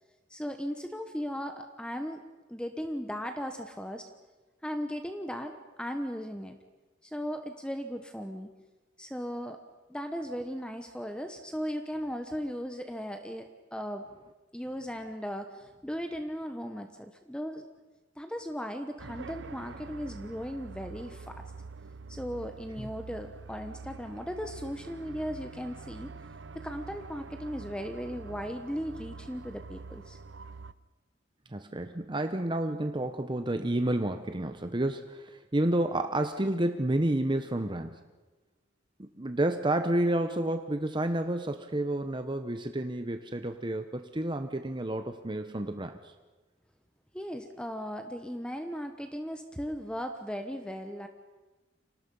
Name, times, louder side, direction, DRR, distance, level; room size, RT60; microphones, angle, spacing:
voice 1, 0.3-2.2 2.5-4.1 4.6-6.6 7.0-8.5 9.0-9.6 9.9-14.0 14.5-17.6 18.2-21.5 22.1-26.1 26.5-30.2 47.1-51.1, equal, 5° left, 6 dB, 1.2 m, -37 dB
sound 1, 19.0-30.7, right 4 dB, 70° right, 0.7 m, -45 dB
voice 2, 31.5-37.9 39.0-45.9, right 1 dB, 25° right, 7 dB, 1.0 m, -30 dB
30.0 x 25.5 x 5.5 m, 1.2 s
head